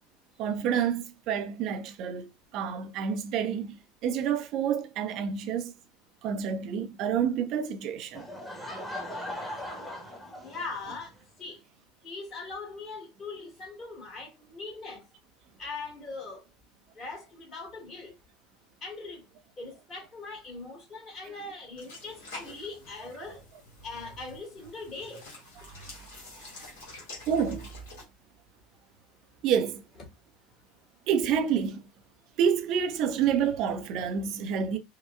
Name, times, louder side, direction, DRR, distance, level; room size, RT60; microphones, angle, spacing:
voice 1, 0.4-2.3 2.5-5.7 6.2-8.2 26.3-26.4 27.3-27.7 29.4-29.8 31.1-31.8 32.4-34.8, right 8 dB, 45° right, 0.6 m, -28 dB
Laughter / Crowd, 8.1-11.0, left 1 dB, ahead, 1.2 m, -39 dB
voice 2, 10.4-11.1 11.4-11.6 12.0-15.0 15.6-16.4 17.0-18.1 18.8-19.2 19.6-23.4 23.8-25.2, left 3 dB, 35° left, 1.9 m, -40 dB
sound 1, 21.8-28.0, left 2 dB, 60° left, 1.7 m, -47 dB
4.8 x 2.2 x 2.2 m
figure-of-eight pair, 75°, 0 cm